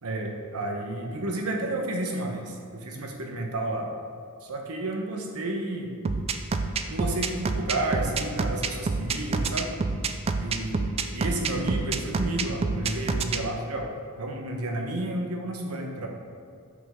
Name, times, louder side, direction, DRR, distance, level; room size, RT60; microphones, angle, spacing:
voice 1, 0.0-3.9 4.4-5.9 6.9-9.7 10.4-13.9 14.2-16.1, right 1 dB, 90° right, 2 dB, 1.0 m, -31 dB
sound 1, 6.0-13.4, right 4 dB, 30° right, 0.3 m, -27 dB
6.6 x 5.4 x 3.7 m, 2.3 s
head